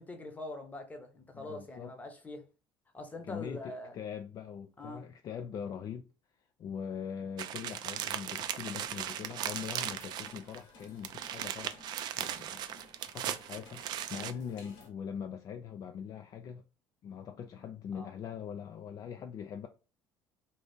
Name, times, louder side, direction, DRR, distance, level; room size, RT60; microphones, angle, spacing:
voice 1, 0.0-2.5 2.9-4.0 4.8-5.0 17.9-18.1, left 2 dB, 20° left, 0.8 m, -43 dB
voice 2, 1.3-1.9 3.2-6.1 6.6-11.9 12.1-16.6 17.0-19.7, left 7 dB, 50° left, 0.3 m, -42 dB
sound 1, 7.4-10.6 10.8-14.3, right 11 dB, 60° right, 0.3 m, -38 dB
sound 2, 8.4-14.9, left 3 dB, 75° left, 1.4 m, -57 dB
2.7 x 2.4 x 3.5 m
supercardioid pair, 90°, 8 cm